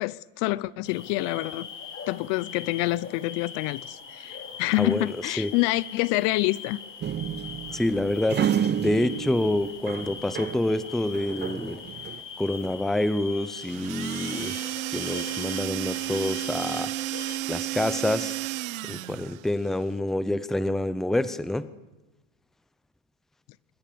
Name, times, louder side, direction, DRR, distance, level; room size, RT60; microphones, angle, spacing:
voice 1, 0.0-1.7 2.1-6.8, left 20 dB, 55° left, 0.7 m, -27 dB
sound 1, 0.8-17.4, left 6 dB, 30° left, 4.4 m, -41 dB
voice 2, 4.8-5.5 7.7-11.8 12.4-14.5 14.9-16.9 17.5-18.4 18.9-21.7, left 1 dB, ahead, 0.7 m, -27 dB
sound 2, 7.0-10.7 11.0-12.2, right 9 dB, 25° right, 0.9 m, -30 dB
sound 3, 13.6-19.5, right 17 dB, 80° right, 1.0 m, -32 dB
23.5 x 20.0 x 7.0 m
supercardioid pair, 125°, 40 cm